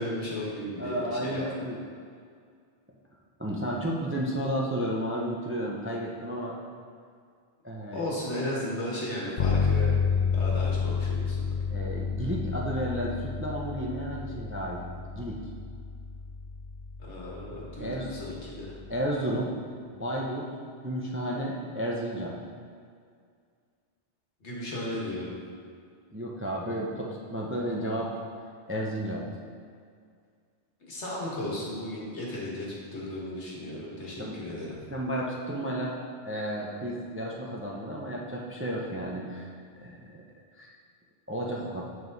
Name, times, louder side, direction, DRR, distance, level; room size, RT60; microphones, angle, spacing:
voice 1, 0.0-1.5 7.9-10.0 10.3-11.5 17.0-18.7 24.4-25.3 30.9-34.7, left 1 dB, 75° left, -5 dB, 1.9 m, -35 dB
voice 2, 0.8-1.8 3.4-6.6 7.6-8.0 11.7-14.8 15.1-15.4 17.8-18.1 18.9-19.5 19.9-20.5 20.8-22.3 26.1-28.2 28.7-29.3 34.2-34.4 34.9-36.0 36.2-39.5 39.8-40.2 40.6-40.7 41.3-41.8, right 1 dB, 15° right, -2 dB, 0.5 m, -32 dB
Bass guitar, 9.4-19.1, left 5 dB, 50° left, 0.6 m, -31 dB
7.7 x 5.3 x 3.9 m, 2.2 s
omnidirectional pair, 1.2 m